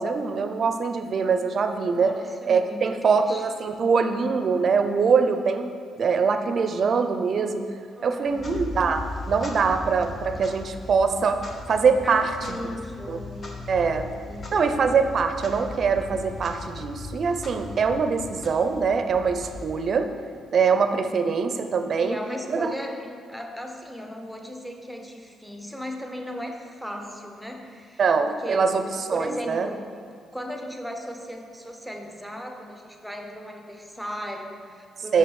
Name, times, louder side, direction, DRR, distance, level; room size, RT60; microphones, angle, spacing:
voice 1, 0.0-2.2 2.5-7.6 8.0-9.0 9.3-11.4 11.7-12.6 13.1-13.2 13.7-14.1 14.5-20.1 20.5-22.2 22.5-22.7 28.0-28.8 29.1-29.7 35.1-35.2, right 5 dB, 45° right, 7 dB, 0.5 m, -23 dB
voice 2, 1.9-3.5 7.9-8.6 12.0-14.5 21.1-21.4 22.0-28.7 29.1-29.9 30.3-35.2, equal, ahead, 3 dB, 0.8 m, -37 dB
Clock, 8.3-20.2, left 2 dB, 35° left, 1.1 m, -38 dB
5.8 x 5.7 x 6.4 m, 2.2 s
cardioid pair, 120°, 0 cm